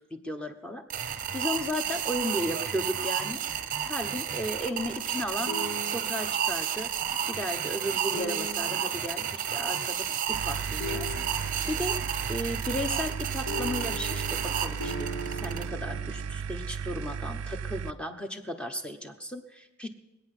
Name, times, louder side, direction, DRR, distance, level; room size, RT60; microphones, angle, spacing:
voice 1, 0.1-3.4 3.9-5.5 5.8-6.9 7.3-12.0 12.3-19.9, equal, 5° left, 5 dB, 1.0 m, -35 dB
sound 1, 0.9-15.6, right 9 dB, 40° right, 0.8 m, -32 dB
sound 2, 5.5-6.3 8.1-8.9 10.8-11.6 13.5-16.1, left 1 dB, 85° left, 5.2 m, -38 dB
sound 3, 10.3-17.9, right 6 dB, 85° right, 0.5 m, -35 dB
22.0 x 9.0 x 6.1 m, 1.1 s
head